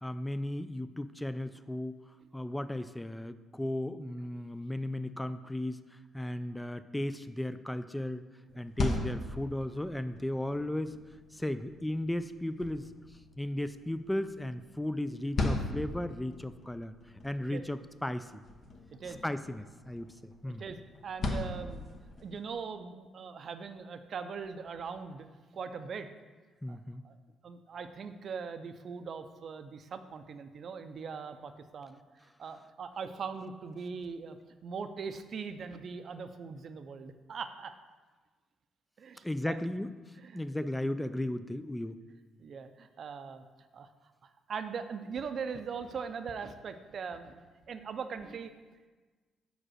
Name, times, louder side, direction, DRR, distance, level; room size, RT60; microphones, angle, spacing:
voice 1, 0.0-2.0 2.3-5.8 6.1-8.2 8.6-11.0 11.3-12.9 13.4-16.9 17.2-18.3 19.2-20.1 20.4-20.6 26.6-27.0 39.2-39.9 40.3-42.0, left 1 dB, 5° left, 12 dB, 0.3 m, -35 dB
sound 1, 8.5-22.4, left 2 dB, 50° left, 0.9 m, -39 dB
voice 2, 20.4-21.9 22.2-25.3 25.5-26.1 26.7-26.8 27.0-27.2 27.4-32.0 32.4-34.4 34.6-37.7 39.0-39.6 40.2-40.4 42.4-43.4 43.7-43.9 44.2-47.4 47.7-48.5, right 5 dB, 55° right, 9 dB, 0.5 m, -41 dB
5.0 x 5.0 x 6.3 m, 1.3 s
cardioid pair, 90°, 0 cm